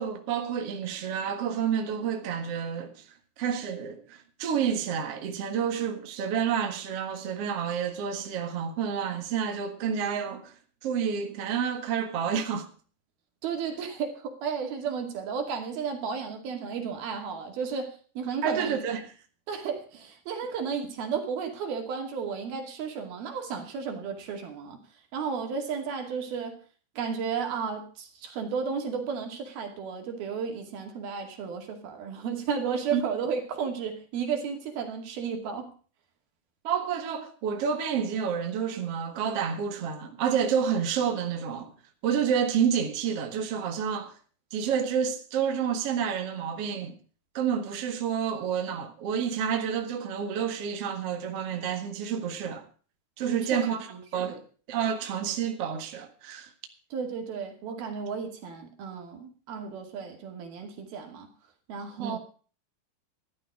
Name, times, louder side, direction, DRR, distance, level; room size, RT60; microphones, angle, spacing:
voice 1, 0.0-3.0 3.4-10.5 10.8-12.7 18.4-19.1 32.9-33.0 36.6-41.7 42.0-44.1 44.5-47.0 47.3-52.6 53.2-53.9 54.1-54.4 54.7-56.5 62.0-62.2, right 7 dB, 50° right, 2.1 m, -29 dB
voice 2, 13.4-18.8 19.5-24.8 25.1-26.6 27.0-35.7 53.2-54.4 56.9-61.3 61.7-62.2, right 6 dB, 70° right, 4.2 m, -33 dB
14.5 x 12.0 x 4.7 m
omnidirectional pair, 4.6 m